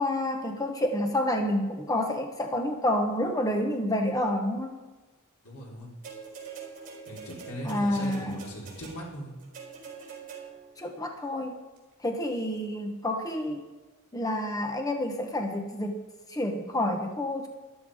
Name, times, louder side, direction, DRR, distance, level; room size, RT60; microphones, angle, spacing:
voice 1, 0.0-4.8 7.6-8.4 10.8-11.6 12.0-13.6 14.1-16.0 16.3-17.5, left 1 dB, 15° left, 3 dB, 1.1 m, -29 dB
voice 2, 5.4-5.9 7.1-9.3, equal, 80° left, -3 dB, 4.1 m, -39 dB
sound 1, 6.0-10.8 11.8-11.9, right 5 dB, 40° right, 4.5 m, -44 dB
14.0 x 12.5 x 5.0 m, 1.2 s
head